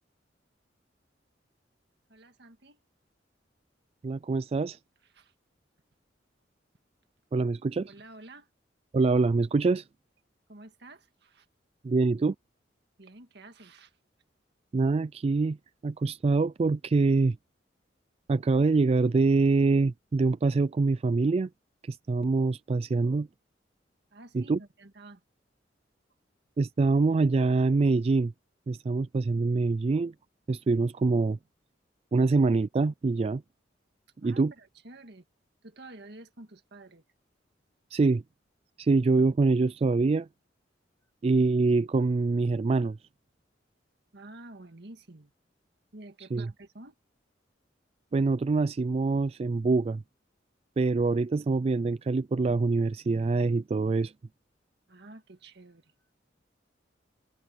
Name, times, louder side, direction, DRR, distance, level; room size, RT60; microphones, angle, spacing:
voice 1, 2.1-2.8 5.1-5.3 7.9-8.5 10.5-11.5 13.0-14.0 24.1-25.2 34.2-35.3 35.6-37.0 44.1-45.3 45.9-47.0 54.9-55.9, right 2 dB, 65° right, 1.9 m, -50 dB
voice 2, 4.0-4.8 7.3-7.9 8.9-9.9 11.8-12.4 14.7-15.6 15.8-17.4 18.3-21.5 21.8-23.3 24.3-24.6 26.6-28.3 28.7-30.1 30.5-31.4 32.1-33.4 34.2-34.5 37.9-38.2 38.8-40.3 41.2-43.0 46.3-46.5 48.1-50.0 50.8-54.1, right 3 dB, 35° right, 0.3 m, -25 dB
head